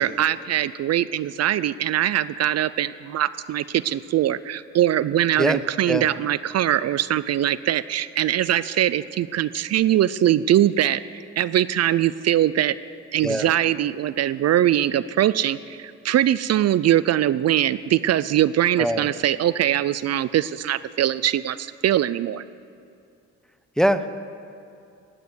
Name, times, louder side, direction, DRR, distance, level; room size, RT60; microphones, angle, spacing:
voice 1, 0.0-12.8 13.1-22.4, right 12 dB, 55° right, 16 dB, 0.5 m, -22 dB
voice 2, 5.4-6.1 13.2-13.5 18.8-19.1 23.8-24.1, equal, ahead, 11 dB, 0.8 m, -23 dB
16.5 x 9.2 x 9.6 m, 2.6 s
cardioid pair, 90°, 30 cm